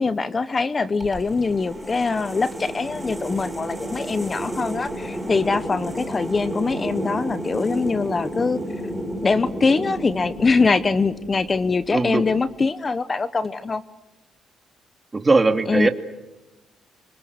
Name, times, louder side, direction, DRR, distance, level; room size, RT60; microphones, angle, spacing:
voice 1, 0.0-8.6 9.2-13.8 15.7-15.9, left 4 dB, 30° left, 15 dB, 0.9 m, -23 dB
sound 1, 1.0-12.1, right 1 dB, 5° right, 7.4 m, -32 dB
voice 2, 11.9-12.3 15.1-15.9, right 3 dB, 25° right, 7 dB, 2.5 m, -19 dB
26.5 x 25.5 x 8.1 m, 1.1 s
cardioid pair, 90°, 0 cm